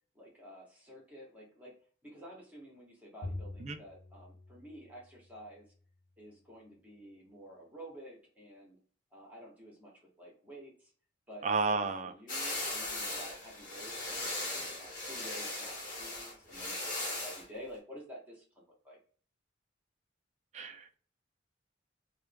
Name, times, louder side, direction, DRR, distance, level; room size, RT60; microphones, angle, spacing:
voice 1, 0.1-1.8 2.0-5.7 6.2-8.8 9.1-10.9 11.3-19.0, equal, 10° right, -3 dB, 1.0 m, -51 dB
Bowed string instrument, 3.2-5.8, left 2 dB, 80° left, 0.6 m, -46 dB
voice 2, 11.4-12.1 20.5-20.9, right 4 dB, 35° right, 7 dB, 0.3 m, -32 dB
sound 1, 12.3-17.4, left 2 dB, 45° left, 1.1 m, -38 dB
3.1 x 2.2 x 3.3 m, 0.43 s
head